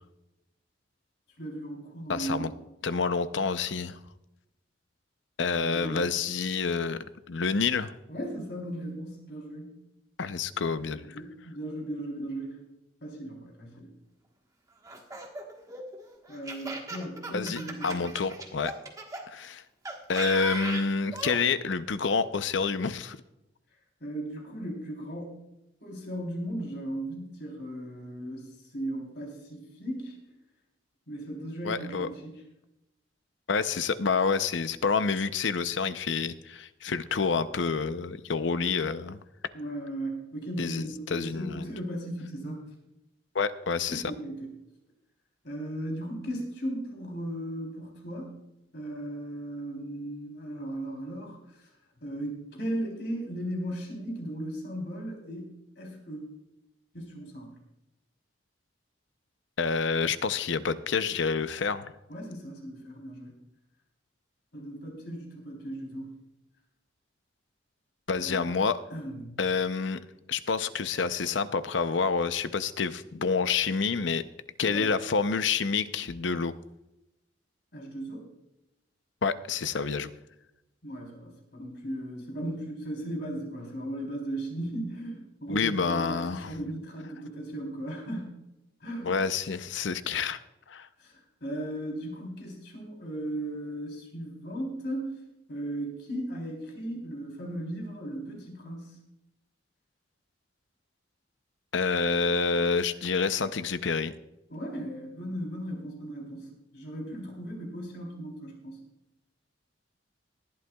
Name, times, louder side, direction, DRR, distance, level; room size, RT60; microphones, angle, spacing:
voice 1, 1.4-2.5 5.7-6.0 8.1-9.7 10.9-12.6 13.0-13.9 16.3-18.1 24.0-25.4 25.8-30.2 31.1-32.4 39.5-42.6 43.9-44.5 45.4-48.3 48.7-51.7 52.0-56.2 56.9-57.6 62.1-63.3 64.5-66.1 68.2-68.5 68.9-69.4 74.6-74.9 77.7-78.2 80.8-88.3 88.8-89.2 91.0-95.2 95.5-99.0 104.5-108.8, right 1 dB, 60° left, 0 dB, 3.6 m, -37 dB
voice 2, 2.1-2.5 2.8-4.0 5.4-7.0 7.3-7.9 10.2-11.2 17.3-18.7 19.3-19.6 20.1-23.2 31.6-32.1 33.5-39.2 40.6-41.7 43.3-44.0 59.6-61.9 68.1-68.8 69.4-70.0 70.3-74.2 74.6-76.5 79.2-80.1 85.5-86.5 89.0-90.4 90.7-90.9 101.7-104.1, left 5 dB, 80° left, 12 dB, 0.6 m, -28 dB
Laughter, 14.8-19.2 19.9-21.4, right 2 dB, 20° right, 1.3 m, -37 dB
19.0 x 11.5 x 2.3 m, 0.90 s
head